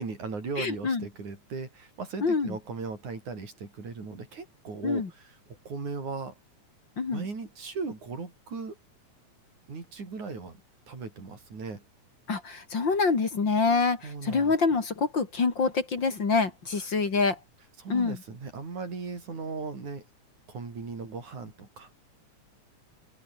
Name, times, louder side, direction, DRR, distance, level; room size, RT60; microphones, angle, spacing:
voice 1, 0.0-5.4 5.7-6.4 7.1-8.8 9.7-10.6 10.9-11.8 14.0-14.5 17.8-20.1 20.5-22.0, right 4 dB, 85° right, 7.2 m, -37 dB
voice 2, 0.6-1.1 2.2-2.6 4.8-5.1 7.0-7.2 12.3-17.4 17.9-18.2, left 4 dB, 40° left, 3.2 m, -26 dB
open air
omnidirectional pair, 3.3 m